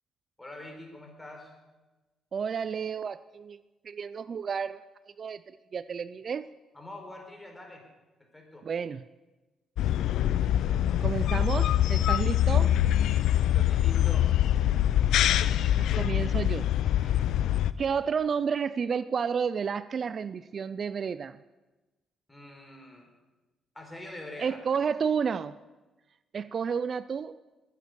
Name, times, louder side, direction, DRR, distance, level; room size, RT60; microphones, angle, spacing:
voice 1, 0.4-1.5 6.7-7.8 8.2-8.7 13.3-14.3 22.3-23.1 23.7-24.6, left 1 dB, 15° left, 2 dB, 4.8 m, -44 dB
voice 2, 2.3-3.6 3.8-4.8 5.2-5.4 5.7-6.5 8.6-9.0 11.0-12.8 15.3-15.4 15.8-17.2 17.8-21.4 24.4-25.6 26.3-27.3, right 6 dB, 50° right, 15 dB, 0.4 m, -31 dB
sound 1, 9.8-17.7, left 11 dB, 80° left, 0.5 m, -24 dB
21.0 x 9.4 x 6.9 m, 1.1 s
cardioid pair, 90°, 0 cm